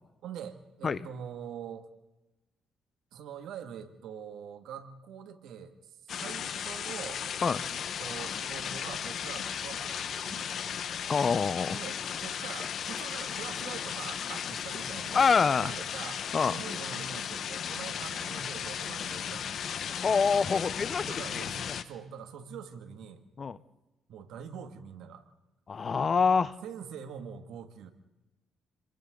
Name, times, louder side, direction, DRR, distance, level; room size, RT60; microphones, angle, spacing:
voice 1, 0.2-1.9 3.1-7.2 7.6-7.7 8.0-10.9 11.7-15.3 15.6-19.7 21.0-23.2 24.1-25.2 26.6-27.9, right 8 dB, 80° right, 7 dB, 2.3 m, -44 dB
sound 1, 6.1-21.8, left 8 dB, 65° left, 1.3 m, -36 dB
voice 2, 11.1-11.8 15.1-15.7 16.3-16.5 20.0-21.4 23.4-23.6 25.7-26.5, left 5 dB, 40° left, 16 dB, 0.9 m, -26 dB
30.0 x 23.0 x 4.0 m, 1.0 s
cardioid pair, 90°, 0 cm